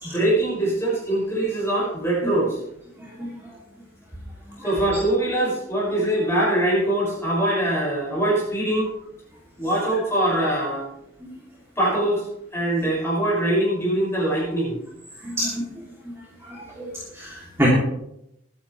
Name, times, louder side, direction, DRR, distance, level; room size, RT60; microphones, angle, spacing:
voice 1, 0.0-2.6 4.6-8.9 9.6-10.9 11.8-12.2 12.5-14.8, right 1 dB, 15° left, -5 dB, 6.2 m, -23 dB
voice 2, 15.2-15.7 16.5-16.9 17.1-17.7, equal, 10° right, -7 dB, 2.9 m, -26 dB
22.5 x 9.8 x 3.3 m, 0.80 s
head